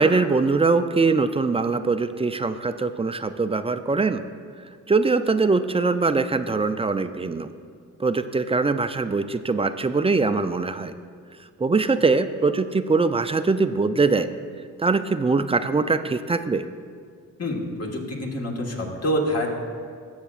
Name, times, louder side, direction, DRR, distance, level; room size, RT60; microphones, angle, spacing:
voice 1, 0.0-4.2 4.9-7.5 8.0-10.9 11.6-14.3 14.8-16.6, right 4 dB, 20° right, 10 dB, 0.3 m, -22 dB
voice 2, 17.4-19.5, equal, 45° left, 0 dB, 1.6 m, -26 dB
13.0 x 7.4 x 2.4 m, 2.1 s
cardioid pair, 65°, 35 cm